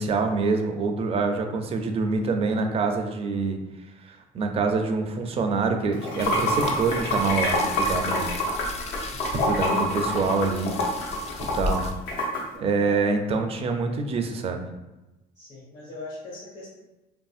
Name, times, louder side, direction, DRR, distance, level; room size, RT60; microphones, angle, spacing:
voice 1, 0.0-3.6 4.0-8.3 9.3-10.8 11.5-11.8 12.6-14.7, right 4 dB, 35° right, 5 dB, 0.4 m, -26 dB
Water / Sink (filling or washing), 5.9-12.4, left 1 dB, 85° left, 0.8 m, -26 dB
sound 1, 6.2-11.9, left 3 dB, 40° left, 0.4 m, -35 dB
voice 2, 9.0-9.4 12.8-13.1 15.3-16.7, left 2 dB, 65° left, -7 dB, 1.2 m, -41 dB
2.8 x 2.6 x 2.4 m, 1.0 s
cardioid pair, 110°, 17 cm